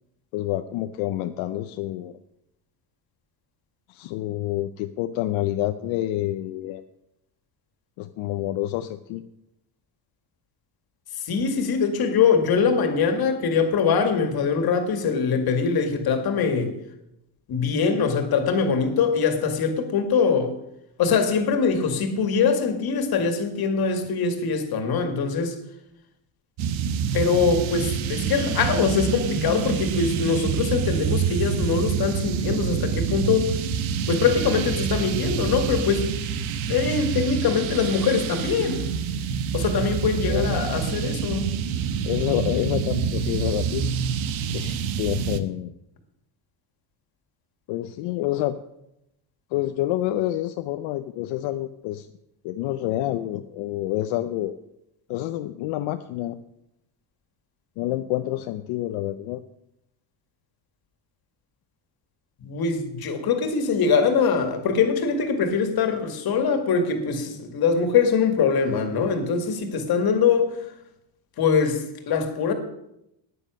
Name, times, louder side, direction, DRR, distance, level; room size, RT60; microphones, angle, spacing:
voice 1, 0.3-2.2 3.9-6.8 8.0-9.2 40.1-40.6 42.0-44.0 44.5-45.7 47.7-48.6 49.5-52.1 52.4-54.5 55.1-56.4 57.8-59.4, left 14 dB, 80° left, 8 dB, 0.7 m, -28 dB
voice 2, 11.2-16.7 17.5-20.5 21.0-25.6 27.1-33.5 34.1-36.1 36.6-38.8 39.5-41.5 62.4-70.5 71.4-72.5, left 5 dB, 50° left, 6 dB, 2.2 m, -23 dB
sound 1, 26.6-45.4, right 7 dB, 75° right, 1.1 m, -27 dB
9.9 x 9.8 x 6.3 m, 0.82 s
cardioid pair, 130°, 47 cm